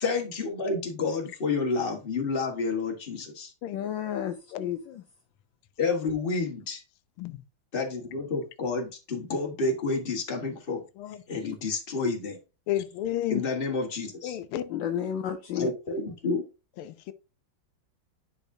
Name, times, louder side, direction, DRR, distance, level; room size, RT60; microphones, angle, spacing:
voice 1, 0.0-3.5 5.8-6.8 7.7-10.8 11.3-12.4 13.3-14.3 15.6-16.4, left 3 dB, 30° left, 1.5 m, -29 dB
voice 2, 3.7-5.0 11.4-11.5 14.7-15.7, left 9 dB, 70° left, 1.3 m, -32 dB
voice 3, 12.7-13.4 14.2-14.7 16.8-17.1, left 12 dB, 90° left, 1.5 m, -31 dB
10.0 x 5.0 x 2.7 m
omnidirectional pair, 2.3 m